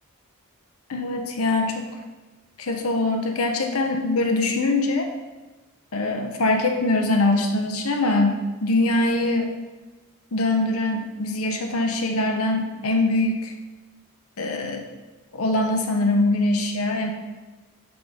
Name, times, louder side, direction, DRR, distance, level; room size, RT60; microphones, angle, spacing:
voice 1, 0.9-1.8 2.6-5.1 5.9-9.5 10.3-13.5 14.4-14.8 15.3-17.1, left 2 dB, 80° left, 4 dB, 0.9 m, -23 dB
11.0 x 3.8 x 3.7 m, 1.2 s
head